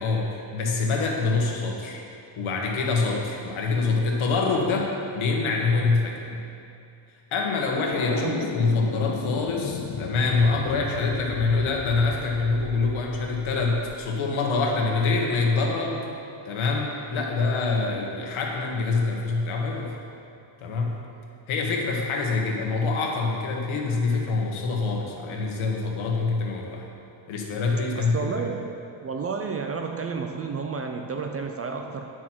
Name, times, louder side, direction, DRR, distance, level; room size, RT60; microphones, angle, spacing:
voice 1, 0.0-2.0 2.4-6.4 7.3-16.1 16.4-19.9 20.6-20.9 21.5-26.9 27.3-28.2, left 3 dB, 75° left, 0 dB, 1.5 m, -25 dB
sound 1, 7.9-14.0, left 7 dB, 45° left, 0.5 m, -36 dB
voice 2, 8.1-8.8 27.9-28.7 29.0-32.1, right 5 dB, 35° right, 4 dB, 0.3 m, -31 dB
9.5 x 6.1 x 4.5 m, 2.6 s
cardioid pair, 140°, 49 cm